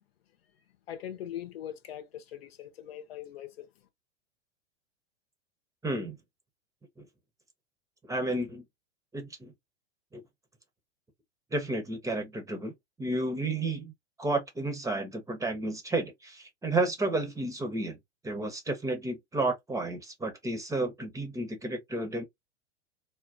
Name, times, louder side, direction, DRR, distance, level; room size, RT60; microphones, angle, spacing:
voice 1, 0.9-3.7, left 11 dB, 65° left, 0.9 m, -41 dB
voice 2, 5.8-6.2 7.0-7.1 8.1-8.6 9.1-9.5 10.1-10.2 11.5-12.7 13.0-13.9 14.2-18.0 18.2-22.3, right 2 dB, 10° right, 0.9 m, -31 dB
3.6 x 2.2 x 2.5 m
hypercardioid pair, 95°, 33 cm